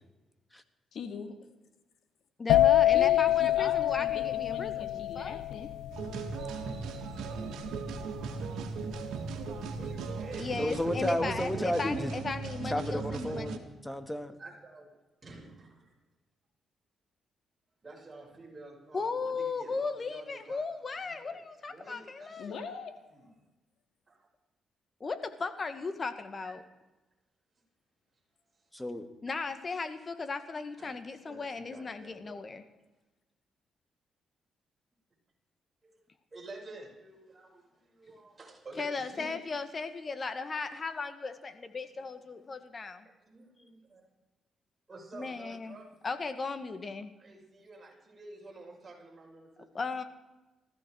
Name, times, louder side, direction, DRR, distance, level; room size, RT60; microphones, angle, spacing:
voice 1, 0.9-1.4 2.9-5.7 22.4-22.9, left 6 dB, 70° left, 6 dB, 2.2 m, -41 dB
voice 2, 2.4-5.4 10.4-13.6 18.9-22.6 25.0-26.6 29.2-32.6 38.8-43.1 45.1-45.8 46.0-47.1 49.7-50.0, left 4 dB, 40° left, 10 dB, 1.8 m, -36 dB
sound 1, 2.5-10.1 10.3-10.8, left 13 dB, 90° left, 0.5 m, -27 dB
sound 2, 5.9-13.6, right 5 dB, 85° right, 2.0 m, -38 dB
voice 3, 9.7-11.2 11.6-12.3 13.3-13.7 14.4-14.9 15.2-15.9 17.8-20.7 21.0-22.6 23.1-23.3 24.1-24.3 26.4-26.5 28.5-28.7 30.8-31.0 31.2-32.4 35.8-36.0 36.3-39.4 43.2-44.1 44.9-46.0 47.2-49.7, right 2 dB, 30° right, -3 dB, 5.9 m, -50 dB
voice 4, 10.6-12.1 12.7-14.4 28.7-29.1, left 1 dB, 10° left, 9 dB, 1.8 m, -32 dB
20.0 x 14.5 x 4.7 m, 1.1 s
cardioid pair, 75°, 0 cm